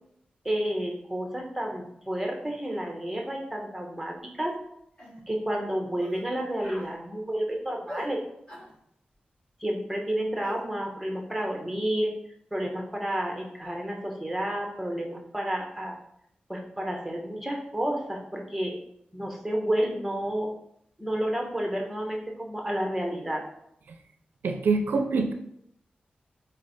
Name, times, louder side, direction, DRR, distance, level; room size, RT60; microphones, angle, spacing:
voice 1, 0.4-4.5 5.3-8.2 9.6-12.1 12.5-16.0 16.5-18.7 19.1-20.5 21.0-23.4, right 1 dB, 5° right, 1 dB, 0.9 m, -30 dB
sound 1, 4.4-4.6 5.0-5.2 6.0-6.2 6.6-6.9 7.9-8.1 8.5-8.7 10.4-10.6, equal, 30° left, 1.5 m, -42 dB
voice 2, 24.4-25.3, right 4 dB, 85° right, 5 dB, 0.4 m, -24 dB
4.1 x 3.2 x 4.0 m, 0.74 s
wide cardioid pair, 105°, 3 cm